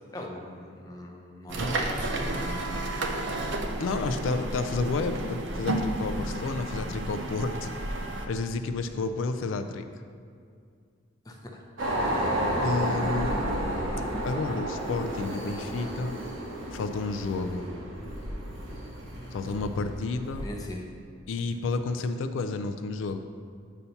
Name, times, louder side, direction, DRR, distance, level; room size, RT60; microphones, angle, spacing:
voice 1, 0.1-2.7 11.2-11.6 20.4-20.9, left 1 dB, 20° left, 0 dB, 0.7 m, -40 dB
sound 1, 1.5-8.3, right 1 dB, 60° right, 0.5 m, -31 dB
voice 2, 3.8-7.7 8.3-9.9 12.6-13.4 14.2-16.1 16.7-17.7 19.3-20.5 21.3-23.2, left 3 dB, 75° left, 7 dB, 0.3 m, -31 dB
sound 2, 11.8-20.4, right 1 dB, 80° right, 1.0 m, -31 dB
8.1 x 2.7 x 5.6 m, 2.2 s
head